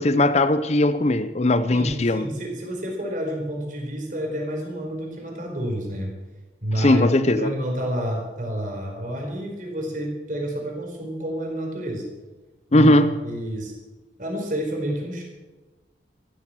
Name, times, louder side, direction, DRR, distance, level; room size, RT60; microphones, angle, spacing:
voice 1, 0.0-2.3 6.8-7.5 12.7-13.1, left 1 dB, 35° left, 0.6 m, -19 dB
voice 2, 1.7-6.1 6.6-7.1 7.4-12.1 12.7-13.7 14.2-15.2, equal, 45° right, 4.6 m, -29 dB
14.5 x 13.0 x 7.6 m
head